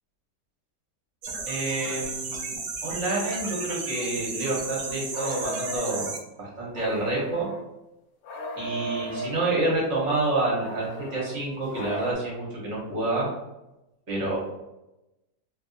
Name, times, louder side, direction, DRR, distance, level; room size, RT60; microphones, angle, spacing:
sound 1, 1.2-6.2, right 4 dB, 75° right, 1.2 m, -34 dB
voice 1, 1.5-6.1 6.4-7.5 8.5-13.3 14.1-14.4, right 2 dB, 50° right, -5 dB, 1.2 m, -28 dB
sound 2, 5.1-6.1 6.7-7.6 8.2-9.5 10.6-12.1, left 1 dB, 70° left, 1.0 m, -35 dB
3.1 x 2.6 x 2.4 m, 0.95 s
omnidirectional pair, 1.8 m